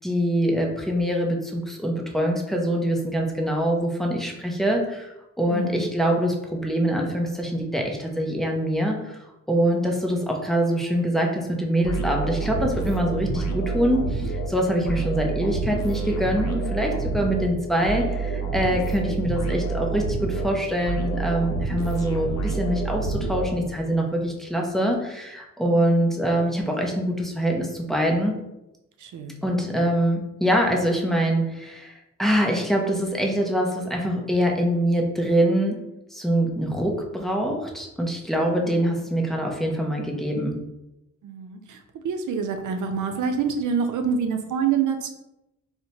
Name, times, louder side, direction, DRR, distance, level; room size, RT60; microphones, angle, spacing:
voice 1, 0.0-9.2 9.5-28.3 29.4-35.8 36.1-40.6, equal, ahead, 0 dB, 0.5 m, -24 dB
voice 2, 5.5-5.8 25.6-26.1 29.0-29.4 38.5-39.0 41.2-45.1, right 6 dB, 80° right, 6 dB, 0.5 m, -27 dB
sound 1, 11.8-24.0, right 3 dB, 65° left, 0.7 m, -28 dB
4.3 x 2.1 x 2.7 m, 0.91 s
wide cardioid pair, 120°, 30 cm